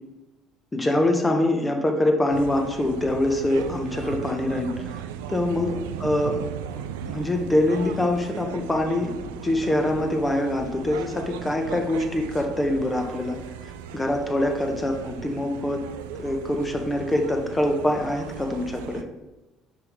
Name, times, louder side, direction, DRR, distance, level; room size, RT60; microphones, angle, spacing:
voice 1, 0.7-5.0 5.3-5.7 6.0-6.4 6.8-13.4 13.9-15.8 16.2-19.0, left 1 dB, 15° left, 3 dB, 1.3 m, -24 dB
sound 1, 2.3-19.0, right 9 dB, 85° right, 0.3 m, -37 dB
5.5 x 4.1 x 4.6 m, 1.1 s
hypercardioid pair, 70°, 0 cm